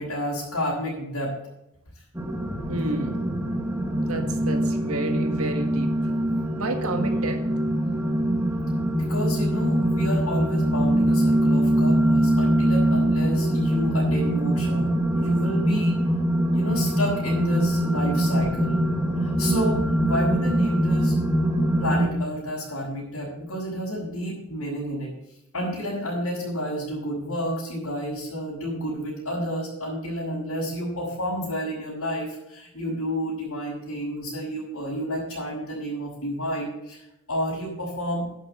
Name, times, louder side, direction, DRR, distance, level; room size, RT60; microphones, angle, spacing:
voice 1, 0.0-1.3 8.9-16.0 16.5-18.9 19.2-21.1 21.8-25.1 25.5-38.3, equal, 75° left, -10 dB, 5.9 m, -30 dB
sound 1, 2.1-22.1, right 1 dB, 10° right, 1.5 m, -23 dB
voice 2, 2.7-3.2 3.8-5.9 6.6-7.4, right 2 dB, 75° right, 5 dB, 1.8 m, -31 dB
11.0 x 6.6 x 8.4 m, 0.85 s
head